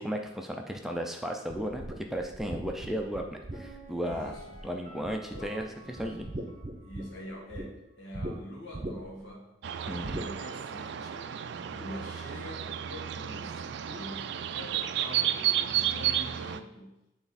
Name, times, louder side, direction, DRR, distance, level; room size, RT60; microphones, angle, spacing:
voice 1, 0.0-4.3 4.6-6.3 9.9-10.2, equal, ahead, 2 dB, 0.4 m, -35 dB
sound 1, 1.5-4.7 5.0-5.7 6.0-7.7 8.1-8.3 8.7-9.2 10.0-10.3, right 1 dB, 35° right, 0.7 m, -39 dB
Piano, 3.5-7.3 7.5-7.6, right 2 dB, 40° left, 2.1 m, -51 dB
voice 2, 3.9-4.6 5.3-5.5 5.8-6.3 6.8-9.5 9.9-11.3 11.7-17.0, equal, 85° left, -2 dB, 1.9 m, -45 dB
sound 2, 9.6-16.6, right 10 dB, 60° right, 0.3 m, -32 dB
9.1 x 3.4 x 4.1 m, 0.89 s
head